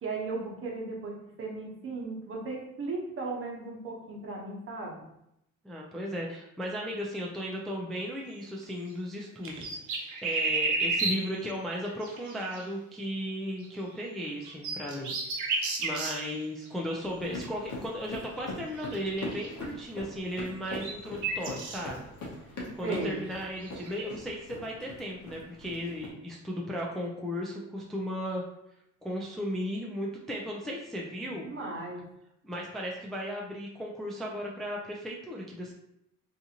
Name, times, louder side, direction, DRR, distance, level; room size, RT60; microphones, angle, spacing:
voice 1, 0.0-5.1 9.5-9.6 22.8-23.2 31.2-32.0, right 3 dB, 45° right, -2 dB, 0.9 m, -36 dB
voice 2, 5.6-9.8 10.1-22.0 22.8-28.4 29.0-31.5 32.4-35.7, equal, ahead, -2 dB, 0.4 m, -36 dB
sound 1, 8.5-8.6 8.9-9.0 9.4-11.4 11.9-12.6 13.6-13.7 14.2-16.3 16.6-16.7 18.4-18.5 18.8-19.5 20.5-21.8 23.0-24.1, right 3 dB, 75° right, 0.7 m, -32 dB
sound 2, 17.0-26.1, left 1 dB, 75° left, 0.9 m, -42 dB
2.6 x 2.4 x 2.8 m, 0.81 s
cardioid pair, 90°, 30 cm